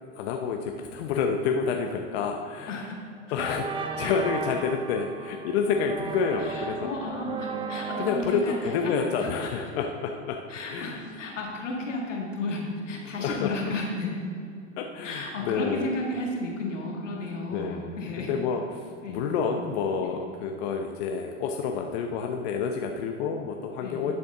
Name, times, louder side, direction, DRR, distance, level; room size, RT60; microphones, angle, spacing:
voice 1, 0.1-2.9 3.3-6.9 8.0-10.4 10.7-11.3 13.0-13.6 14.8-15.9 17.5-24.1, left 5 dB, 60° left, 3 dB, 0.8 m, -29 dB
sound 1, 2.6-2.9 3.4-10.2, right 4 dB, 15° right, 0.6 m, -36 dB
voice 2, 6.4-9.3 10.5-14.2 15.0-18.3 19.0-19.2 20.0-20.2 23.8-24.1, left 2 dB, 85° left, -1 dB, 1.9 m, -33 dB
12.0 x 7.0 x 3.7 m, 2.3 s
hypercardioid pair, 90°, 36 cm